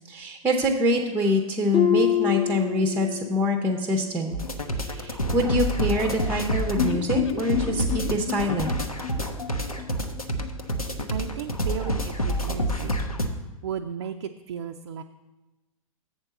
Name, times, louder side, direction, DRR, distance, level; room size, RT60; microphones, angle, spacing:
voice 1, 0.1-4.4 4.7-8.7, left 1 dB, 10° right, 3 dB, 0.6 m, -25 dB
Harp, 1.7-3.5 3.9-4.3 4.8-4.9, left 9 dB, 25° left, 0.8 m, -25 dB
sound 1, 4.3-13.3, equal, 90° left, 0.8 m, -28 dB
sound 2, 6.8-10.6 10.9-11.0 11.3-11.4, left 8 dB, 55° left, 0.7 m, -31 dB
voice 2, 11.1-12.9 13.6-15.0, right 8 dB, 50° right, 5 dB, 0.4 m, -34 dB
7.6 x 4.4 x 6.8 m, 1.1 s
figure-of-eight pair, 105°, 18 cm